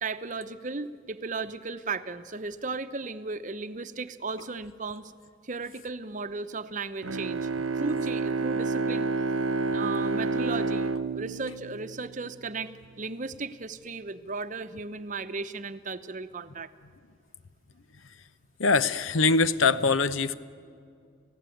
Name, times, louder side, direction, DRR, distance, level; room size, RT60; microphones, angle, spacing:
voice 1, 0.0-5.1 5.4-7.5 7.8-9.1 9.7-10.9 11.1-16.7, right 4 dB, 40° right, 11 dB, 0.8 m, -35 dB
Bowed string instrument, 7.0-12.6, right 3 dB, 90° right, 0.8 m, -29 dB
voice 2, 18.6-20.3, left 4 dB, 80° left, 14 dB, 0.9 m, -23 dB
29.5 x 16.5 x 9.2 m, 2.2 s
head